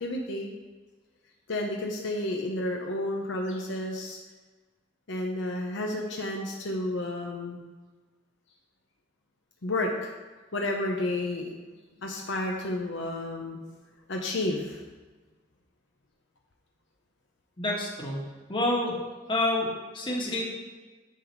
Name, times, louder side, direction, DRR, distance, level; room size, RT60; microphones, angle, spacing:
voice 1, 0.0-0.5 1.5-4.2 5.1-7.6 9.6-10.1 10.5-11.6 12.0-13.6 14.1-14.8, left 1 dB, 65° left, 0 dB, 0.8 m, -31 dB
voice 2, 17.6-18.2 18.5-18.9 19.3-19.7 19.9-20.5, left 2 dB, 25° left, -3 dB, 1.5 m, -27 dB
10.0 x 4.0 x 4.6 m, 1.3 s
head